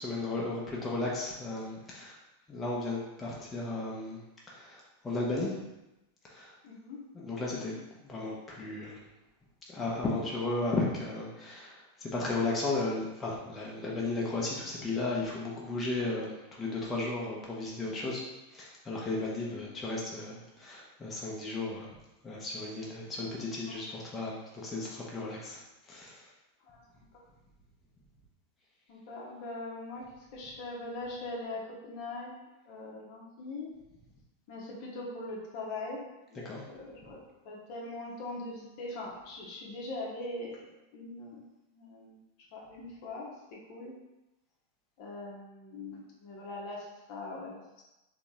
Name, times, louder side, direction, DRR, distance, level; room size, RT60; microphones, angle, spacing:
voice 1, 0.0-2.2 2.5-4.2 4.5-5.6 6.3-6.5 7.2-7.7 8.0-9.0 9.7-18.2 18.5-21.9 22.2-25.6 25.9-26.3 36.4-36.6, left 2 dB, 15° left, -5 dB, 0.9 m, -34 dB
voice 2, 6.6-7.0 19.3-19.6 23.7-23.8 26.6-26.8 27.1-27.2 28.9-32.3 32.7-33.7 34.5-36.0 36.3-41.4 41.7-42.2 42.5-43.9 45.0-47.8, left 2 dB, 45° left, -3 dB, 1.0 m, -41 dB
4.0 x 2.9 x 3.7 m, 0.98 s
figure-of-eight pair, 90°, 0 cm